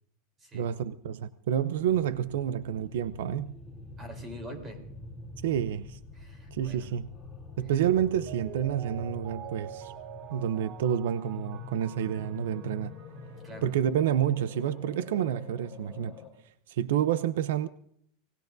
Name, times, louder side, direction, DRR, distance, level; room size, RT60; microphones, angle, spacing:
voice 1, 0.5-3.5 5.4-6.0 6.5-7.1 7.6-9.9 10.3-12.9 13.6-16.1 16.7-17.7, right 10 dB, 80° right, 0.6 m, -29 dB
sound 1, 1.8-16.3, left 3 dB, ahead, 3.0 m, -45 dB
voice 2, 4.0-4.8 6.1-6.9 13.4-13.7, equal, 15° right, 3.7 m, -44 dB
Mallet percussion, 7.9-13.5 13.8-13.9, right 11 dB, 35° right, 0.8 m, -46 dB
28.0 x 19.0 x 2.6 m
supercardioid pair, 175°, 0 cm